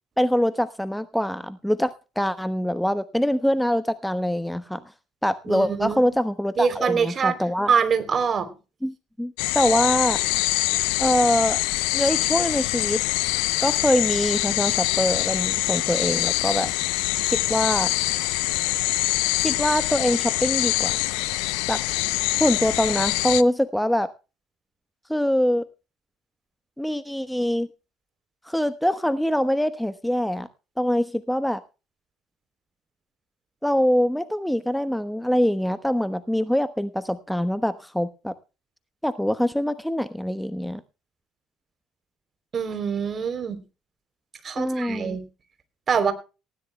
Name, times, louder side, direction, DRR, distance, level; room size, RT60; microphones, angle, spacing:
voice 1, 0.2-4.8 5.2-7.7 8.8-10.2 11.0-11.6 11.9-13.0 13.6-16.7 17.3-17.9 19.4-20.9 21.7-21.8 22.4-24.1 25.1-25.6 26.8-27.7 28.5-30.5 30.8-31.6 33.6-38.3 39.0-40.8 44.6-45.2, equal, 5° left, 1.0 m, -24 dB
voice 2, 5.5-6.1 6.6-7.4 7.7-8.5 42.5-43.6 44.4-45.2 45.9-46.1, right 6 dB, 40° right, 3.3 m, -24 dB
sound 1, 9.4-23.4, left 20 dB, 75° left, 0.6 m, -24 dB
19.0 x 16.5 x 2.2 m
hypercardioid pair, 60°, 0 cm